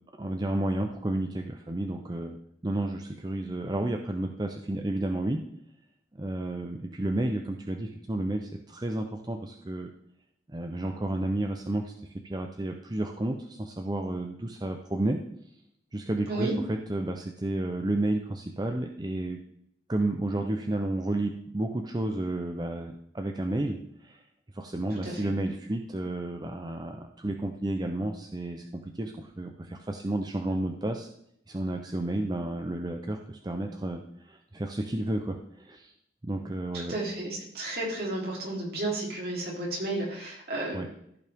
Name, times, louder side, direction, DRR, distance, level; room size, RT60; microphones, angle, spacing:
voice 1, 0.2-2.4 2.6-5.4 6.2-9.9 10.5-11.9 12.2-15.2 15.9-19.4 19.9-24.2 24.5-31.1 31.5-35.9 36.2-36.9 40.7-40.9, right 1 dB, 20° right, 4 dB, 0.6 m, -31 dB
voice 2, 36.7-40.8, right 2 dB, 55° right, -3 dB, 3.4 m, -32 dB
14.5 x 5.6 x 3.5 m, 0.70 s
head